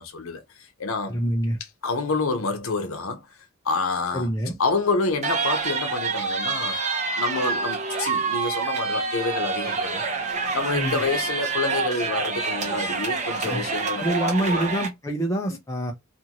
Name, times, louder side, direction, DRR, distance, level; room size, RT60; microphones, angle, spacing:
voice 1, 0.0-1.2 1.8-3.2 3.6-4.3 4.6-6.8 7.2-10.0 10.5-14.7, left 3 dB, 85° left, 0.7 m, -28 dB
voice 2, 1.1-1.6 4.1-4.6 10.7-11.0 13.5-13.6 14.0-15.9, right 1 dB, 15° left, 0.5 m, -26 dB
sound 1, 5.2-14.9, right 4 dB, 35° right, 0.9 m, -27 dB
2.6 x 2.5 x 2.8 m
head